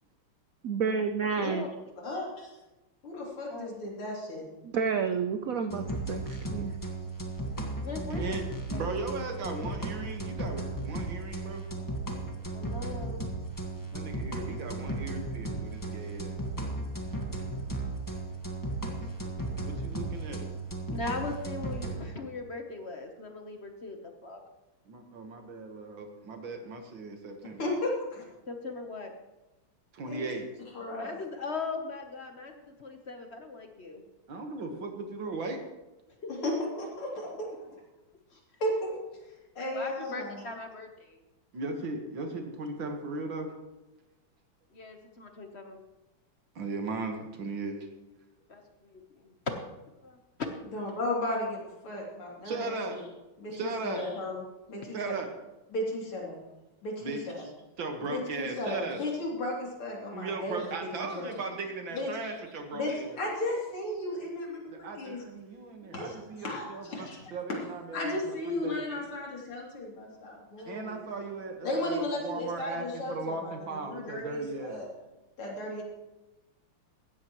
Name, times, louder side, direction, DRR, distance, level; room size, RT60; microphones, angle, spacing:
voice 1, 0.6-1.6 4.6-6.7, right 6 dB, 80° right, 7 dB, 0.7 m, -30 dB
voice 2, 1.4-1.7 3.5-3.7 7.8-8.4 8.7-8.9 12.5-13.2 20.9-24.4 28.5-29.1 30.9-34.0 36.2-36.5 39.6-41.2 44.7-45.8 48.5-49.3 50.0-50.2, left 3 dB, 45° left, 4 dB, 0.9 m, -39 dB
voice 3, 2.0-2.5 3.0-4.4 27.6-28.2 30.0-30.3 30.7-31.2 36.3-37.5 38.6-39.0 39.6-40.4 50.7-53.0 53.4-54.4 54.7-55.1 55.7-56.4 56.8-57.2 58.1-60.7 61.0-61.3 61.9-62.1 62.7-65.2 65.8-66.1 66.4-67.2 67.9-71.0 71.6-74.9 75.4-75.8, left 1 dB, 85° left, -3 dB, 3.9 m, -34 dB
sound 1, 5.7-22.0, right 2 dB, 10° left, 1.2 m, -35 dB
voice 4, 8.1-8.4 8.7-11.6 13.9-16.4 19.6-20.5 24.9-27.6 29.9-30.5 34.3-35.6 41.5-43.5 46.6-47.9 52.4-53.0 53.5-54.0 54.9-55.3 57.0-57.5 57.8-59.0 60.1-63.2 64.7-68.8 70.7-74.8, right 3 dB, 65° right, 4 dB, 2.2 m, -37 dB
16.5 x 13.5 x 3.1 m, 1.1 s
omnidirectional pair, 2.3 m